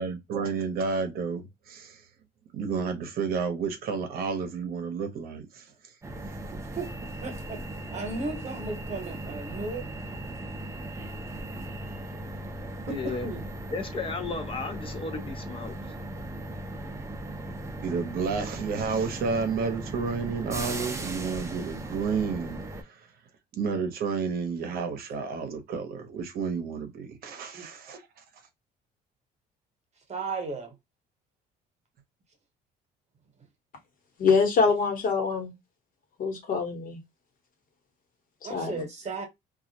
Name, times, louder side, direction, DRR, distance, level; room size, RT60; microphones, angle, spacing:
voice 1, 0.0-2.0 2.5-5.7 17.8-23.0 23.5-28.0, right 5 dB, 65° right, 0.7 m, -31 dB
sound 1, 6.0-22.8, right 1 dB, 15° right, 0.5 m, -38 dB
voice 2, 6.5-7.6 7.9-9.9 13.0-13.4 27.5-27.7 30.1-30.7 38.4-39.3, right 3 dB, 40° right, 1.0 m, -35 dB
voice 3, 12.9-13.3 13.7-15.8, left 4 dB, 30° left, 0.6 m, -34 dB
voice 4, 34.2-35.5 36.2-37.0 38.5-38.8, left 5 dB, 55° left, 1.1 m, -24 dB
2.3 x 2.0 x 2.7 m
cardioid pair, 110°, 17 cm